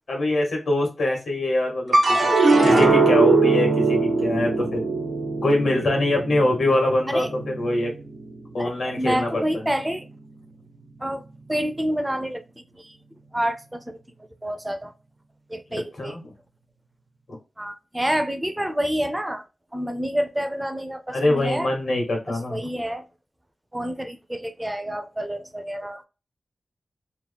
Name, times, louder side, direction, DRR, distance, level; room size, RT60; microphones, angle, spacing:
voice 1, 0.1-2.3 2.6-4.8 5.4-7.9 8.5-9.7 16.0-16.3 21.1-22.6, left 1 dB, 80° left, 1.2 m, -24 dB
sound 1, 1.9-8.4 8.8-9.5, right 3 dB, 90° right, 0.7 m, -21 dB
voice 2, 8.6-10.0 11.0-11.2 11.5-12.4 12.8-12.9 13.3-13.8 14.4-14.9 15.5-16.2 17.6-19.4 19.7-21.7 22.5-23.0 23.7-26.0, equal, 10° right, 0.4 m, -28 dB
2.9 x 2.1 x 3.3 m
wide cardioid pair, 95°, 0 cm